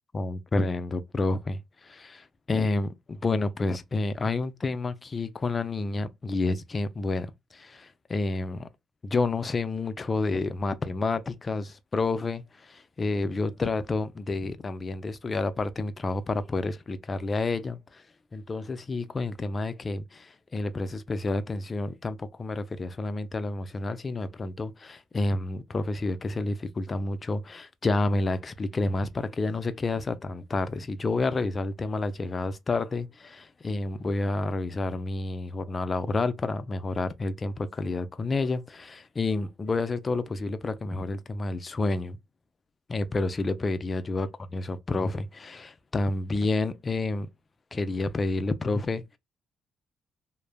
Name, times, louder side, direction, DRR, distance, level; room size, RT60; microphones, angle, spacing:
voice 1, 0.1-8.7 9.0-18.0 18.3-42.2 42.9-47.3 47.7-49.0, left 3 dB, 30° left, 0.4 m, -29 dB
3.1 x 2.0 x 2.2 m
cardioid pair, 90°, 0 cm